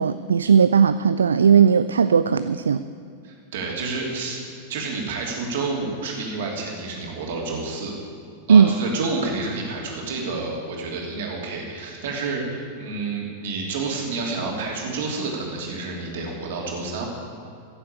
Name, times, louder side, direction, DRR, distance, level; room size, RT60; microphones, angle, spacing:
voice 1, 0.0-2.8 8.5-8.8, right 6 dB, 70° right, 13 dB, 0.3 m, -17 dB
voice 2, 3.2-4.4 4.7-7.9 8.5-17.1, right 3 dB, 55° right, -1 dB, 3.0 m, -29 dB
15.0 x 7.6 x 8.4 m, 2.4 s
figure-of-eight pair, 90°, 0 cm